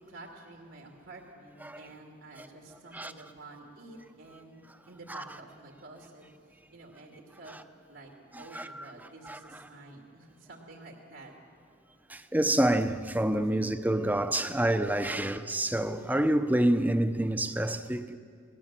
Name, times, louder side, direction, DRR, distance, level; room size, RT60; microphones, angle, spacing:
voice 1, 0.0-7.6 7.9-8.1 8.4-11.3 13.4-13.8, right 2 dB, 75° right, 2.6 m, -49 dB
voice 2, 8.3-8.8 9.3-9.4 12.1-18.2, right 1 dB, 10° right, 0.7 m, -27 dB
28.5 x 19.5 x 7.5 m
head